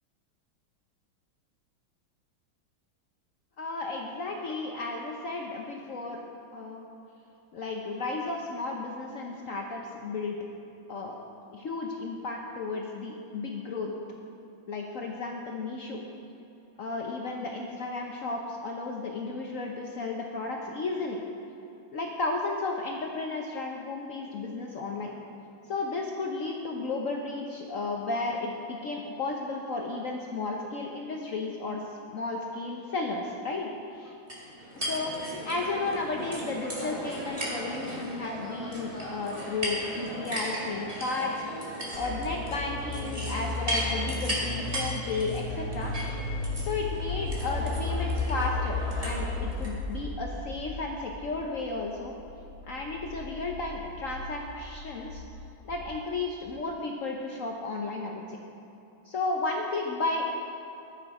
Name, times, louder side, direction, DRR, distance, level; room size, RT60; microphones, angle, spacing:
voice 1, 3.6-6.2 6.5-6.9 7.5-10.4 10.9-11.2 11.5-13.9 14.7-16.0 16.8-21.2 21.9-25.1 25.7-31.8 32.1-34.1 34.7-41.3 41.9-46.0 46.6-52.1 52.6-55.2 55.6-58.4 59.0-60.3, left 3 dB, 65° left, 1 dB, 0.8 m, -33 dB
sound 1, 34.3-49.7, equal, 20° right, 1.7 m, -36 dB
sound 2, 41.9-56.0, left 3 dB, 55° right, 2.3 m, -35 dB
12.5 x 7.1 x 4.8 m, 2.9 s
omnidirectional pair, 2.2 m